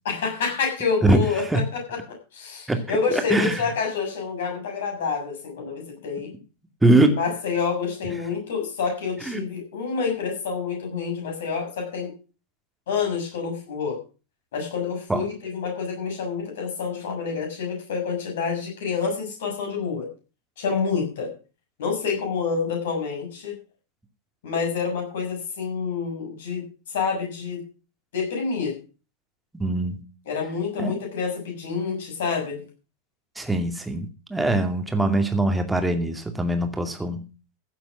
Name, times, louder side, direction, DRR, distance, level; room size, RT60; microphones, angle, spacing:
voice 1, 0.1-6.3 7.1-12.1 12.9-14.0 14.5-20.1 20.6-21.3 21.8-23.6 24.4-27.6 28.1-28.7 30.3-32.6, left 5 dB, 55° left, 2 dB, 7.2 m, -28 dB
voice 2, 3.1-3.6 6.8-7.2 9.3-9.4 15.1-15.2 29.5-30.0 30.8-30.9 33.4-37.2, right 2 dB, 5° right, 6 dB, 2.4 m, -22 dB
15.5 x 7.8 x 6.2 m, 0.34 s
figure-of-eight pair, 90°, 0 cm